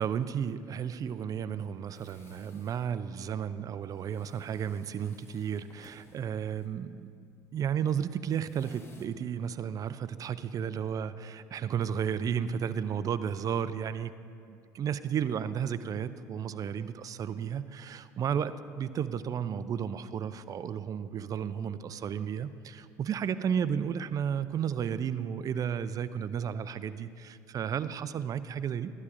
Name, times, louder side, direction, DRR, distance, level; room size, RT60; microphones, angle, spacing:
voice 1, 0.0-7.1 7.5-14.1 14.5-28.9, right 8 dB, 40° right, 14 dB, 0.4 m, -33 dB
sound 1, 1.9-9.1, left 2 dB, 25° left, 1.0 m, -61 dB
12.0 x 11.5 x 2.5 m, 2.3 s
hypercardioid pair, 65°, 9 cm